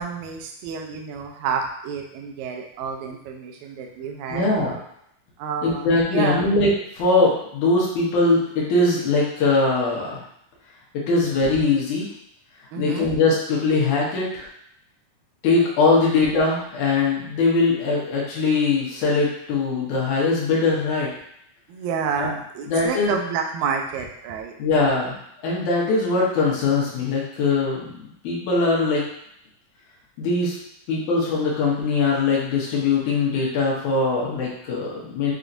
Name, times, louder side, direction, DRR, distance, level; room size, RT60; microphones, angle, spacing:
voice 1, 0.0-4.5 5.4-6.4 12.7-13.1 16.0-16.1 21.7-24.5, right 6 dB, 80° right, 2 dB, 1.8 m, -29 dB
voice 2, 4.3-4.8 5.6-10.2 10.9-12.1 12.8-14.5 15.4-21.1 22.2-22.3 22.7-23.1 24.6-25.2 25.4-29.1 30.2-30.6 30.9-35.3, left 3 dB, 75° left, -5 dB, 2.5 m, -21 dB
6.9 x 2.8 x 2.6 m, 0.74 s
omnidirectional pair, 3.6 m